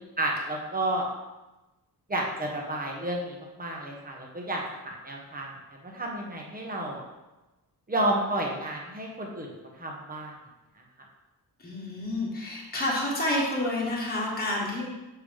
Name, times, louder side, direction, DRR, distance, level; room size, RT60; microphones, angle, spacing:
voice 1, 0.2-1.1 2.1-7.0 7.9-10.3, right 1 dB, 20° right, -1 dB, 1.2 m, -31 dB
voice 2, 11.6-14.8, left 1 dB, 25° left, -4 dB, 1.5 m, -29 dB
7.1 x 5.3 x 3.5 m, 1.1 s
wide cardioid pair, 130°, 39 cm